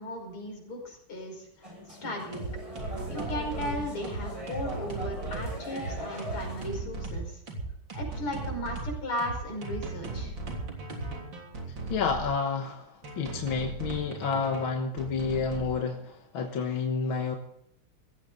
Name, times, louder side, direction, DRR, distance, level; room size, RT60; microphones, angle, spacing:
voice 1, 0.0-1.5 1.9-2.5 3.1-7.4 7.9-10.3, left 1 dB, 85° left, 2 dB, 6.2 m, -36 dB
sound 1, 1.6-6.7, equal, 15° right, 6.8 m, -40 dB
sound 2, 2.2-12.3 13.0-15.7, right 2 dB, 60° right, 4.1 m, -37 dB
voice 2, 11.9-17.4, left 5 dB, 65° left, 3 dB, 2.1 m, -30 dB
18.0 x 15.5 x 4.0 m, 0.74 s
omnidirectional pair, 2.4 m